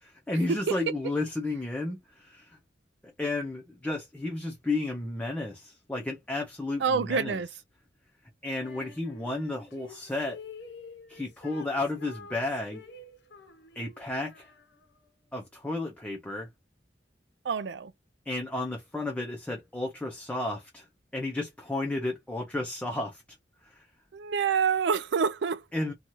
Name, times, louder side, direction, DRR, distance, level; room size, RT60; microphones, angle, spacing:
voice 1, 0.0-2.6 3.0-7.4 8.4-10.4 11.1-12.8 13.8-14.5 15.3-16.5 18.3-20.8 21.1-23.2 23.6-23.8 25.7-25.9, left 2 dB, 10° left, 0.5 m, -32 dB
voice 2, 6.8-7.5 17.4-17.9 24.1-25.6, right 6 dB, 75° right, 0.4 m, -27 dB
Female singing, 8.6-15.1, left 3 dB, 75° left, 0.8 m, -48 dB
2.7 x 2.3 x 2.9 m
head